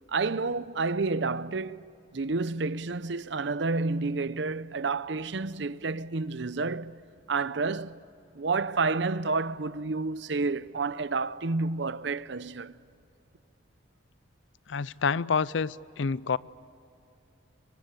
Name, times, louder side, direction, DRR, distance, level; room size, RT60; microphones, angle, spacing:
voice 1, 0.1-6.9 7.3-8.0 8.3-12.7, right 3 dB, 65° right, 0.7 m, -30 dB
voice 2, 14.7-16.4, left 5 dB, 75° left, 0.5 m, -28 dB
27.0 x 24.0 x 8.3 m
head